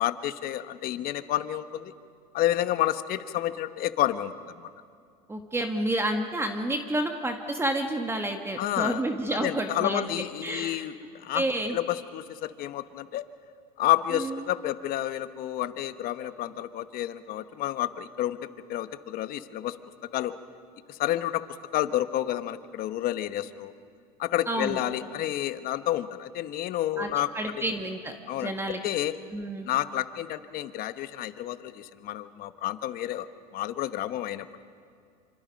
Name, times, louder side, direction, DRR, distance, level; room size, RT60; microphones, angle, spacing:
voice 1, 0.0-1.9 2.3-4.3 8.6-9.0 9.3-11.4 11.7-13.2 13.8-19.8 20.1-20.3 20.9-21.4 21.7-23.7 24.2-27.3 28.3-28.5 28.8-29.1 29.6-33.3 33.5-34.5, left 13 dB, 50° left, 11 dB, 1.2 m, -30 dB
voice 2, 5.3-10.8 11.3-11.8 14.1-14.4 24.5-24.8 27.0-28.8 29.3-29.7, right 1 dB, 10° right, 5 dB, 1.7 m, -30 dB
27.0 x 25.5 x 5.3 m, 2.3 s
supercardioid pair, 110°, 20 cm